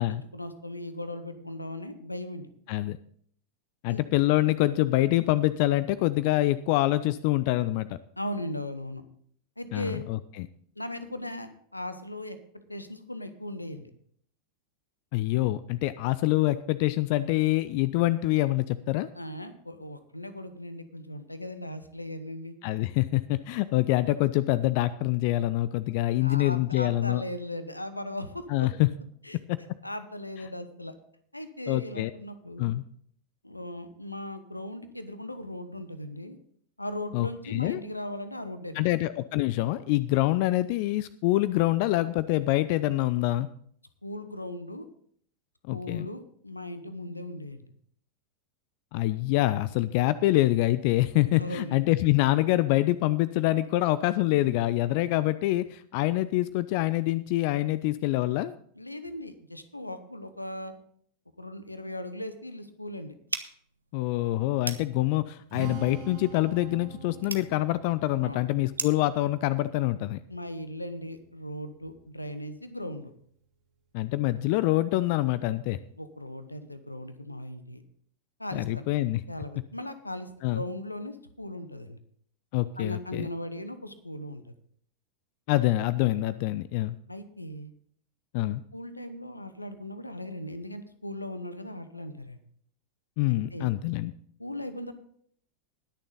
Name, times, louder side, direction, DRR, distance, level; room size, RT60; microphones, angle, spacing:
voice 1, 0.0-2.5 3.9-4.0 8.2-9.0 9.6-10.1 10.8-12.4 12.7-13.9 19.1-22.5 26.2-28.7 29.2-30.9 31.3-32.7 33.4-36.4 36.8-38.9 44.0-44.9 45.7-47.7 51.4-51.8 58.8-60.7 61.4-63.1 68.2-68.4 70.3-73.1 76.0-77.8 78.4-78.8 79.3-82.0 82.8-84.5 87.1-87.7 88.3-88.5 88.7-92.4 93.3-93.7 94.4-94.9, left 1 dB, 85° left, 11 dB, 1.0 m, -38 dB
voice 2, 3.8-8.0 9.7-10.5 15.1-19.1 22.6-27.2 28.5-28.9 29.5-29.6 31.7-32.1 32.6-32.8 37.1-37.8 38.7-43.5 45.7-46.1 48.9-58.5 63.9-70.2 73.9-75.8 78.5-79.2 80.4-80.6 82.5-83.3 85.5-87.0 88.3-88.6 93.2-94.1, left 17 dB, 45° left, 16 dB, 0.4 m, -25 dB
sound 1, 63.3-69.1, right 3 dB, 80° right, 0.8 m, -40 dB
Strum, 65.5-71.8, right 6 dB, 45° right, 2.9 m, -45 dB
20.5 x 6.8 x 3.9 m, 0.62 s
figure-of-eight pair, 90°, 0 cm